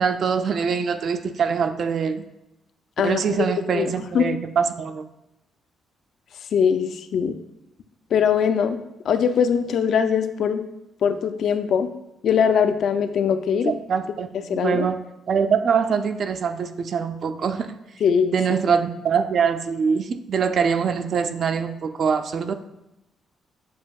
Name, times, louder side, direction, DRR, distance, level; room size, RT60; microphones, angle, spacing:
voice 1, 0.0-2.2 3.0-5.0 13.6-15.0 15.3-17.8 18.3-22.5, right 6 dB, 50° right, 9 dB, 0.3 m, -23 dB
voice 2, 3.0-3.4 3.7-4.3 6.5-7.3 8.1-8.8 9.1-10.6 11.0-11.9 12.2-13.7 14.5-14.9 18.0-18.4, left 7 dB, 60° left, 9 dB, 0.3 m, -21 dB
7.2 x 2.7 x 2.3 m, 0.89 s
cardioid pair, 115°, 0 cm